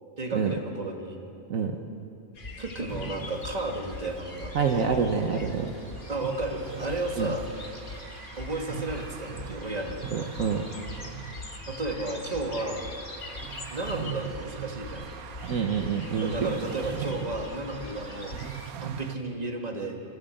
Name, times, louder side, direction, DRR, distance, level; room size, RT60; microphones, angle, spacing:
voice 1, 0.2-1.2 2.6-4.9 6.1-7.5 8.4-10.1 11.7-12.9 13.7-15.1 16.2-18.4 18.8-20.0, right 2 dB, 30° right, 2 dB, 2.0 m, -33 dB
sound 1, 2.3-18.7, left 3 dB, 40° left, 1.4 m, -42 dB
sound 2, 2.9-19.2, right 10 dB, 85° right, 1.2 m, -41 dB
voice 2, 4.5-5.8 7.2-7.3 10.1-10.7 15.5-16.6, right 6 dB, 70° right, 4 dB, 1.4 m, -27 dB
25.0 x 15.5 x 7.8 m, 2.8 s
omnidirectional pair, 1.5 m